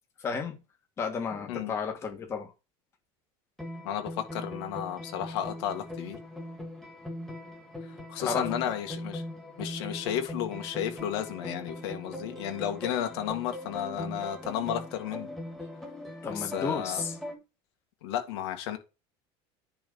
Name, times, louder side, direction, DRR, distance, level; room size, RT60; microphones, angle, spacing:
voice 1, 0.2-0.6 1.0-2.5 8.2-8.5 9.8-9.9 16.2-17.2, left 5 dB, 20° left, 1.7 m, -32 dB
sound 1, 3.6-17.3, left 1 dB, ahead, 1.9 m, -40 dB
voice 2, 3.8-6.2 8.1-9.2 9.6-15.3 16.3-17.0 18.0-18.8, left 10 dB, 85° left, 2.1 m, -33 dB
10.0 x 3.9 x 5.6 m
cardioid pair, 170°, 13 cm